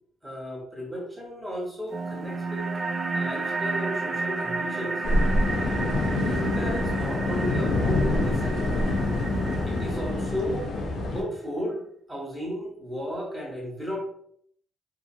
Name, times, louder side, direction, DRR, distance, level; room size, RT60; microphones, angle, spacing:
voice 1, 0.2-2.7 3.1-5.0 6.2-8.6 9.6-10.7 11.0-11.8 12.1-14.0, equal, 10° right, -2 dB, 1.1 m, -34 dB
sound 1, 1.9-10.9, right 3 dB, 35° right, 0.4 m, -32 dB
sound 2, 5.0-11.2, left 2 dB, 75° left, 0.7 m, -26 dB
2.8 x 2.4 x 2.7 m, 0.65 s
cardioid pair, 90°, 0 cm